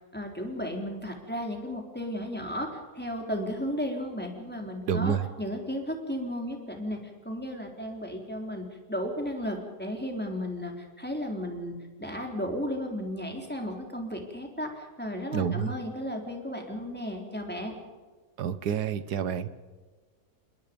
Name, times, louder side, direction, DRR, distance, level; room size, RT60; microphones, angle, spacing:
voice 1, 0.1-2.7 2.9-7.0 7.2-11.7 12.0-17.7, equal, 5° left, 1 dB, 3.6 m, -34 dB
voice 2, 4.9-5.2 15.3-15.7 18.4-19.5, right 7 dB, 85° right, 14 dB, 1.7 m, -28 dB
28.0 x 21.5 x 5.3 m, 1.4 s
omnidirectional pair, 1.7 m